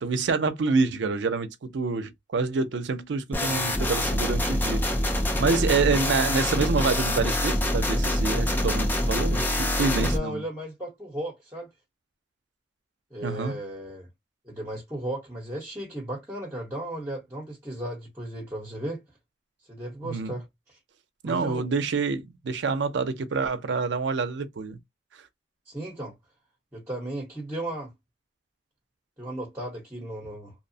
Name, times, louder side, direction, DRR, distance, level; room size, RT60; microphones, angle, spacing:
voice 1, 0.0-4.8 5.4-10.4 13.2-13.6 20.0-20.4 21.2-24.8, right 4 dB, 75° right, 0.5 m, -27 dB
sound 1, 3.3-10.2, left 1 dB, 10° left, 0.3 m, -25 dB
voice 2, 10.0-11.7 13.1-14.1 14.4-19.0 19.7-20.4 21.2-21.7 25.7-26.1 26.7-27.9 29.2-30.5, right 1 dB, 10° right, 0.8 m, -35 dB
2.8 x 2.0 x 2.6 m
head